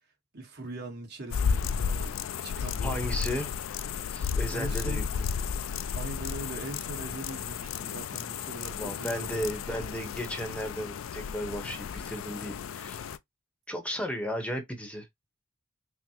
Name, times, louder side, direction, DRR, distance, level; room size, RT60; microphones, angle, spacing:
voice 1, 0.3-2.2 2.4-3.3 3.9-4.3 4.5-5.1 5.9-9.5, right 2 dB, 55° right, 1.3 m, -41 dB
sound 1, 1.3-13.2, left 6 dB, 85° left, 0.4 m, -33 dB
voice 2, 2.8-3.5 4.1-5.3 8.7-13.1 13.7-15.1, equal, 5° left, 0.8 m, -35 dB
5.5 x 2.0 x 2.9 m
head